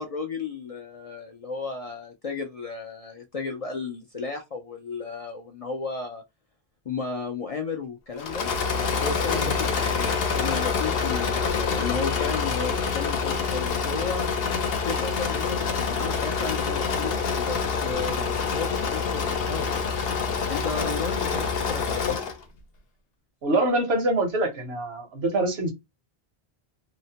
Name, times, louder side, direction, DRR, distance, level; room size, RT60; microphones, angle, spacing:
voice 1, 0.0-6.2 6.9-8.5 9.0-10.1 10.4-14.3 14.8-19.7 20.2-22.1, left 5 dB, 55° left, 0.4 m, -34 dB
Engine / Mechanisms, 8.2-22.4, left 5 dB, 70° left, 0.8 m, -26 dB
voice 2, 23.4-25.7, right 2 dB, 85° right, 1.2 m, -25 dB
2.8 x 2.0 x 2.7 m
omnidirectional pair, 1.0 m